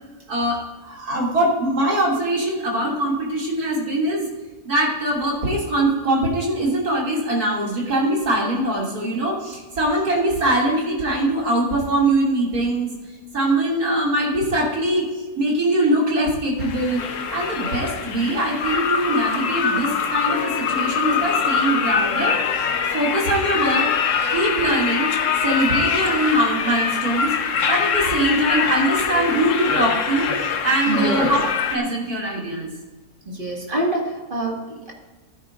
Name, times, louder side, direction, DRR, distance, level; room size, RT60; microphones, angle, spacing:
voice 1, 0.3-4.3 4.6-12.9 13.3-17.0 17.3-22.4 22.9-23.9 24.3-25.1 25.4-27.3 27.7-31.4 31.7-32.7, right 1 dB, 60° right, -3 dB, 3.2 m, -22 dB
sound 1, 16.6-31.8, left 6 dB, 60° left, 1.0 m, -23 dB
voice 2, 30.9-31.3 33.3-34.9, right 2 dB, 30° right, -2 dB, 2.1 m, -25 dB
15.5 x 9.2 x 2.6 m, 1.2 s
omnidirectional pair, 1.8 m